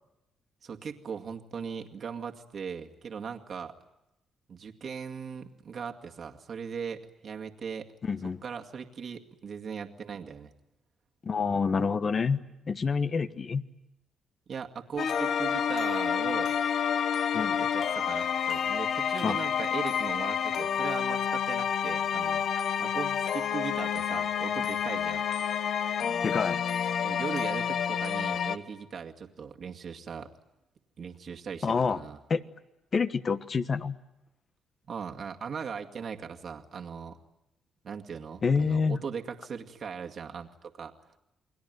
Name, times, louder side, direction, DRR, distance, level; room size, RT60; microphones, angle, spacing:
voice 1, 0.6-3.7 4.5-7.9 8.4-10.5 14.5-16.6 17.6-22.5 22.8-25.3 27.0-30.3 31.0-32.2 34.9-37.2 37.8-40.9, right 6 dB, 55° right, 3 dB, 2.2 m, -39 dB
voice 2, 8.0-8.4 11.2-12.4 12.7-13.6 17.3-17.7 19.2-19.4 26.2-26.6 31.6-32.0 32.3-32.4 32.9-34.0 38.4-39.0, left 5 dB, 40° left, 11 dB, 1.3 m, -27 dB
sound 1, 15.0-28.6, left 8 dB, 65° left, 1.3 m, -29 dB
29.5 x 21.5 x 9.4 m, 0.90 s
cardioid pair, 90°, 0 cm